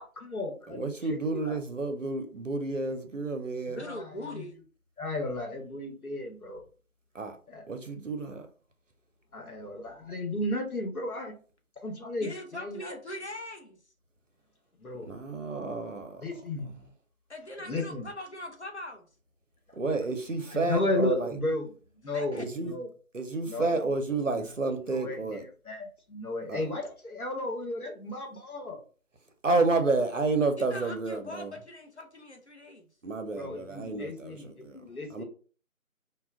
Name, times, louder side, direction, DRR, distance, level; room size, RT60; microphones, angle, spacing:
voice 1, 0.0-1.6 3.8-4.4 5.0-6.6 7.5-7.6 9.3-11.3 11.8-12.9 14.8-15.1 16.2-16.7 17.6-18.1 20.5-21.7 22.0-22.9 23.5-23.8 24.3-24.5 24.9-28.8 33.3-35.2, left 2 dB, 80° left, 1.0 m, -34 dB
voice 2, 0.7-3.8 7.1-7.4 7.7-8.5 15.1-16.2 19.8-21.4 22.4-22.8 23.1-25.4 26.5-26.6 29.4-31.5 33.0-34.8 35.1-35.2, right 3 dB, 60° right, 0.6 m, -30 dB
voice 3, 3.7-4.6 12.2-13.8 17.3-19.1 22.1-22.5 30.6-32.8, left 1 dB, 50° left, 0.6 m, -41 dB
2.1 x 2.1 x 3.5 m
figure-of-eight pair, 175°, 43 cm